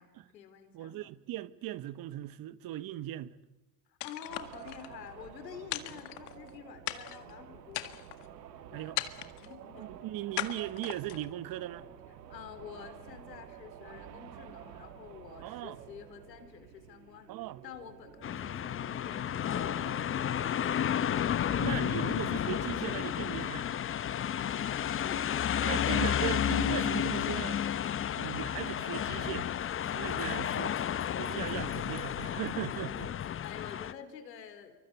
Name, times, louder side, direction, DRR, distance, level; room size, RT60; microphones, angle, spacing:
voice 1, 0.0-1.1 3.9-8.0 8.7-9.0 9.4-10.1 12.3-17.3 17.6-20.6 24.7-26.0 33.4-34.8, left 8 dB, 85° left, 3.9 m, -49 dB
voice 2, 0.7-3.4 8.7-9.0 9.8-11.9 15.4-15.8 17.3-17.6 21.5-23.8 25.6-27.6 28.2-29.5 29.9-30.8 31.2-33.1, right 14 dB, 45° right, 1.3 m, -38 dB
sound 1, 4.0-4.9 5.7-6.5 6.9-7.3 7.7-8.3 9.0-9.5 10.4-11.3, left 17 dB, 65° left, 2.0 m, -38 dB
sound 2, 4.3-23.1, right 9 dB, 80° right, 2.5 m, -51 dB
sound 3, 18.2-33.9, left 9 dB, 25° left, 0.9 m, -32 dB
28.0 x 24.0 x 8.2 m
hypercardioid pair, 90°, 49 cm